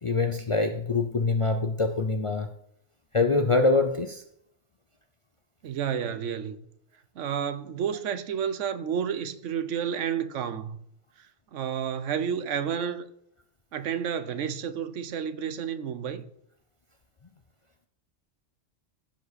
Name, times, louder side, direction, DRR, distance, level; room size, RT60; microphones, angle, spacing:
voice 1, 0.0-2.5 3.1-4.2, left 3 dB, 40° left, 0.5 m, -24 dB
voice 2, 5.6-6.6 7.1-10.8 11.2-13.1 13.7-16.3, right 8 dB, 80° right, 1.1 m, -31 dB
15.0 x 5.2 x 4.1 m
omnidirectional pair, 1.3 m